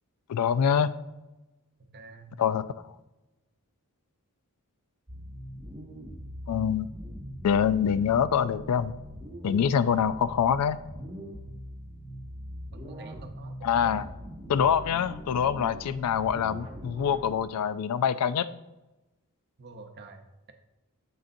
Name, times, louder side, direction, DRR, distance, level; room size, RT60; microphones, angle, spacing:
voice 1, 0.3-0.9 2.4-2.6 6.5-6.9 7.4-9.0 9.4-10.8 13.6-14.1 14.5-18.5, left 8 dB, 85° left, 15 dB, 0.3 m, -25 dB
voice 2, 1.9-2.3 12.7-14.0 19.6-20.5, right 3 dB, 50° right, 6 dB, 0.7 m, -47 dB
sound 1, 5.1-17.4, equal, 25° right, 0.9 m, -42 dB
7.2 x 6.4 x 2.6 m, 1.0 s
head